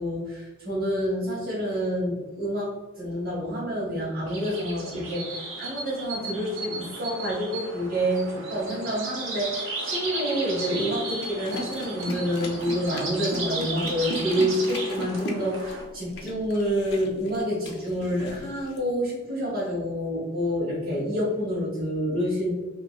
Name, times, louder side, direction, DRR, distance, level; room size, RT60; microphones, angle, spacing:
voice 1, 0.0-22.5, equal, 50° right, -8 dB, 0.9 m, -28 dB
sound 1, 4.3-15.8, right 2 dB, 90° right, 0.7 m, -35 dB
sound 2, 11.2-18.8, left 1 dB, 60° left, 0.5 m, -38 dB
2.8 x 2.7 x 2.2 m, 1.2 s
head